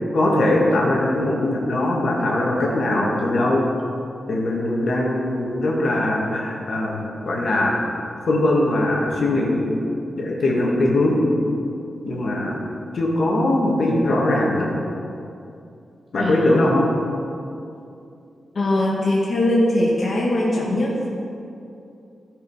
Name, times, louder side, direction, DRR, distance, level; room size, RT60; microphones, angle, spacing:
voice 1, 0.1-3.7 4.3-7.8 8.3-9.7 10.2-11.3 12.0-12.6 12.9-14.7 16.1-16.9, left 1 dB, 65° left, -2 dB, 1.9 m, -21 dB
voice 2, 16.2-16.6 18.5-21.0, left 1 dB, 45° left, -5 dB, 1.6 m, -21 dB
15.0 x 5.0 x 5.6 m, 2.6 s
wide cardioid pair, 110°, 0 cm